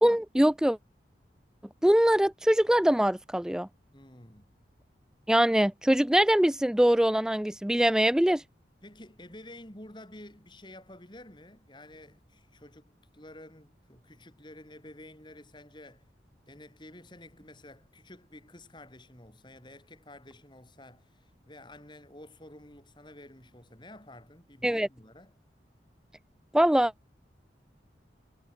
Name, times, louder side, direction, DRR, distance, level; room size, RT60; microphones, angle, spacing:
voice 1, 0.0-0.8 1.8-3.7 5.3-8.4 24.6-24.9 26.5-26.9, equal, 5° right, 0.3 m, -23 dB
voice 2, 3.9-4.5 8.8-16.1 16.5-25.3, left 1 dB, 25° left, 5.3 m, -50 dB
head